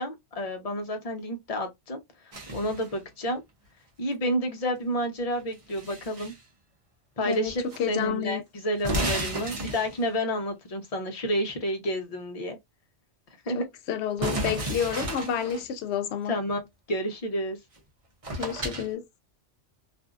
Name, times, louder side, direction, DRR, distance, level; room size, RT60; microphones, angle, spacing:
voice 1, 0.0-2.0 2.5-3.4 4.0-6.3 7.2-12.6 13.5-13.6 16.3-16.6 16.9-17.6, equal, 35° left, 0.7 m, -30 dB
sound 1, 2.3-3.0 5.3-6.4 7.3-7.8 8.1-8.2 8.8-10.2 14.2-15.6 17.8-17.9 18.2-18.9, right 1 dB, 35° right, 0.7 m, -32 dB
voice 2, 7.8-8.4 13.5-16.4 18.4-19.1, left 9 dB, 70° left, 0.8 m, -30 dB
2.6 x 2.5 x 2.3 m
omnidirectional pair, 1.3 m